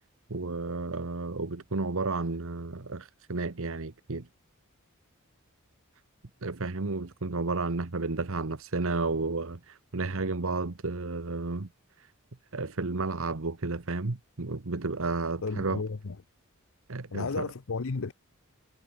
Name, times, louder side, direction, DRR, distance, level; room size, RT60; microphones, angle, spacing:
voice 1, 0.3-4.3 6.4-11.7 12.5-15.8 16.9-17.5, right 3 dB, 65° right, 1.2 m, -32 dB
voice 2, 15.4-16.2 17.1-18.1, left 4 dB, 65° left, 0.7 m, -33 dB
head